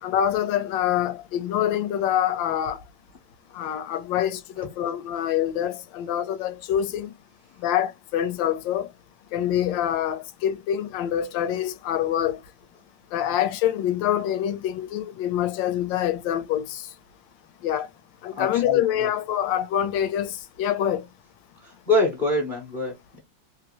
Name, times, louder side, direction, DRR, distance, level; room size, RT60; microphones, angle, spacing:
voice 1, 0.0-2.8 3.5-7.1 7.6-8.9 9.3-12.4 13.1-16.9 17.6-17.9 18.2-21.1, left 10 dB, 75° left, 1.2 m, -25 dB
voice 2, 18.3-19.1 21.6-23.2, left 2 dB, 40° left, 0.7 m, -26 dB
3.1 x 2.5 x 2.8 m
omnidirectional pair, 2.1 m